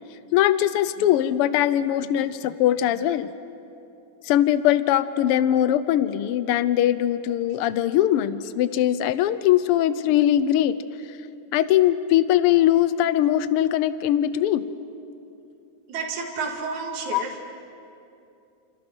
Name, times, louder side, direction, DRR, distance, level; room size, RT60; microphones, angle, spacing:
voice 1, 0.3-3.3 4.2-10.7 11.5-14.6 17.1-17.2, left 12 dB, 85° left, 14 dB, 1.2 m, -21 dB
voice 2, 15.9-17.4, right 4 dB, 70° right, 1 dB, 3.8 m, -30 dB
29.5 x 29.0 x 6.1 m, 2.6 s
omnidirectional pair, 3.6 m